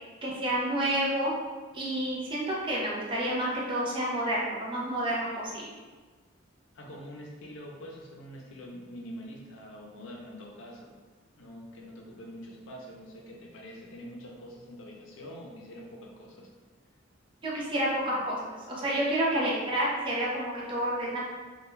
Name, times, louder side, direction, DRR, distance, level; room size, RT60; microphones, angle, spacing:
voice 1, 0.2-1.3 1.7-5.7 17.4-21.2, right 1 dB, 25° right, -5 dB, 0.4 m, -29 dB
voice 2, 6.7-10.9 11.4-16.5, equal, 70° left, -1 dB, 0.5 m, -45 dB
2.2 x 2.2 x 3.0 m, 1.3 s
head